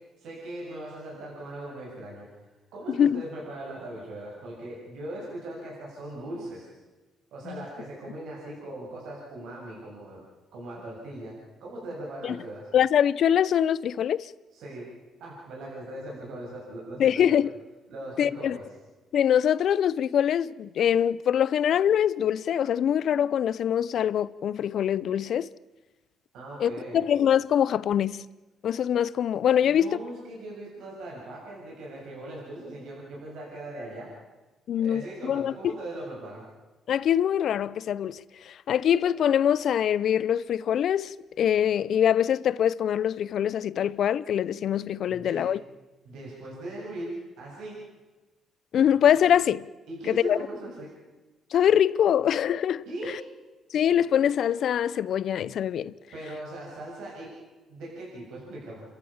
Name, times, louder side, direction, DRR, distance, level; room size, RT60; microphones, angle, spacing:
voice 1, 0.2-2.4 2.7-6.7 7.3-10.2 10.5-11.3 11.6-12.7 14.5-14.9 15.2-17.4 17.9-18.6 26.3-27.0 29.6-34.1 34.8-36.4 45.1-45.4 46.0-47.8 49.9-50.9 52.9-53.1 56.1-57.3 57.7-58.8, right 1 dB, 80° right, 7.3 m, -39 dB
voice 2, 2.9-3.2 7.5-7.6 12.2-12.3 12.7-14.3 17.0-17.5 18.2-18.6 19.1-25.5 26.6-28.2 28.6-30.0 34.7-35.7 36.9-45.6 48.7-49.7 50.1-50.4 51.5-53.2 53.7-55.9, left 9 dB, 70° left, 0.6 m, -24 dB
30.0 x 13.5 x 7.3 m
cardioid pair, 90°, 0 cm